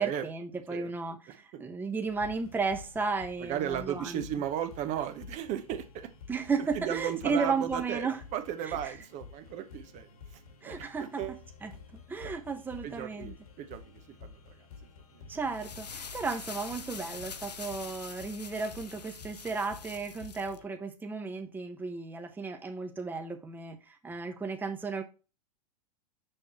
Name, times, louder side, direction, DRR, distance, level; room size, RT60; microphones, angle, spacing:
voice 1, 0.0-4.2 6.3-8.2 8.8-8.9 10.6-11.2 11.6-13.3 15.3-25.0, right 4 dB, 10° right, 0.9 m, -34 dB
sound 1, 2.0-20.6, left 5 dB, 65° left, 1.7 m, -51 dB
voice 2, 3.4-6.1 6.7-8.1 8.3-11.4 12.2-12.3 12.8-13.9 14.2-14.6 15.1-15.2, right 10 dB, 35° right, 1.0 m, -35 dB
sound 2, 15.4-20.6, left 6 dB, 85° left, 0.7 m, -45 dB
6.6 x 6.0 x 3.0 m
figure-of-eight pair, 100°, 20 cm